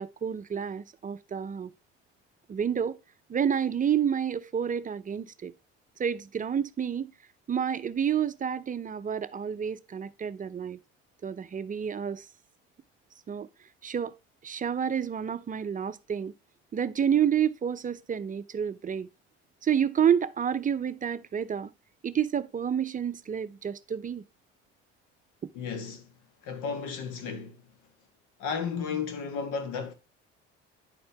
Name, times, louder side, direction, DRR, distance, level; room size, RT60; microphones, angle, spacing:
voice 1, 0.0-1.7 2.5-3.0 3.3-5.5 6.0-7.1 7.5-10.8 11.2-12.3 13.3-13.5 13.8-14.2 14.4-16.3 16.7-19.1 19.6-21.7 22.0-24.2 25.4-25.5, right 8 dB, 25° right, 0.5 m, -29 dB
voice 2, 25.5-26.1 26.4-27.6 28.4-29.9, left 6 dB, 80° left, 1.6 m, -33 dB
10.5 x 4.4 x 3.3 m
supercardioid pair, 85°, 29 cm